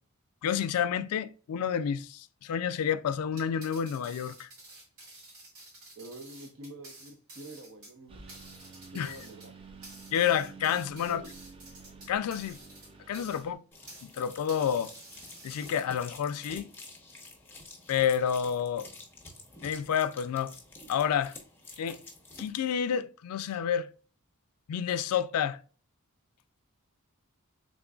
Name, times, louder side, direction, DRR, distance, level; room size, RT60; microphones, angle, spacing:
voice 1, 0.4-4.5 8.9-9.2 10.1-11.2 12.1-12.6 13.1-13.6 14.0-14.9 15.4-16.7 17.9-18.9 19.6-20.5 20.9-21.3 21.8-22.0 22.4-23.9 24.7-25.6, left 8 dB, 80° left, 0.3 m, -29 dB
sound 1, 3.3-14.1 14.5-16.1, right 2 dB, 75° right, 1.9 m, -51 dB
voice 2, 6.0-8.2 8.9-9.5 11.0-11.3, right 2 dB, 60° right, 0.7 m, -46 dB
Engine, 8.1-13.5, right 4 dB, 25° right, 0.4 m, -50 dB
sound 2, 13.7-22.5, left 2 dB, 10° left, 0.7 m, -49 dB
3.7 x 3.6 x 2.3 m
head